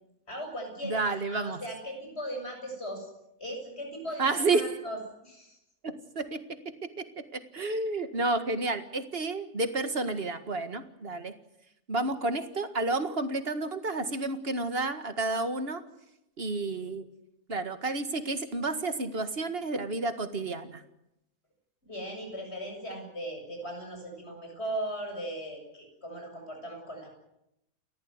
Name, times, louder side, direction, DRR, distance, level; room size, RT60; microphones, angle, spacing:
voice 1, 0.3-3.1 3.4-5.6 21.8-27.1, right 1 dB, 50° left, 3 dB, 7.7 m, -38 dB
voice 2, 0.8-1.6 4.2-4.7 5.8-11.3 11.9-15.8 16.4-17.1 17.5-20.8, right 3 dB, 45° right, 9 dB, 2.0 m, -31 dB
30.0 x 14.0 x 9.7 m, 0.85 s
omnidirectional pair, 1.4 m